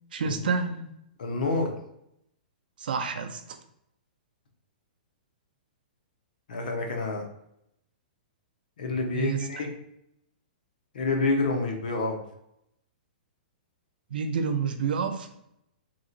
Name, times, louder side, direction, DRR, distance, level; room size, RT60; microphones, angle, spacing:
voice 1, 0.1-0.9 2.8-3.6 9.1-9.5 14.1-15.3, right 5 dB, 70° right, 7 dB, 0.4 m, -29 dB
voice 2, 1.2-1.8 6.5-7.2 8.8-9.7 10.9-12.2, left 3 dB, 65° left, 2 dB, 0.7 m, -28 dB
3.0 x 2.8 x 2.5 m, 0.78 s
hypercardioid pair, 175°, 5 cm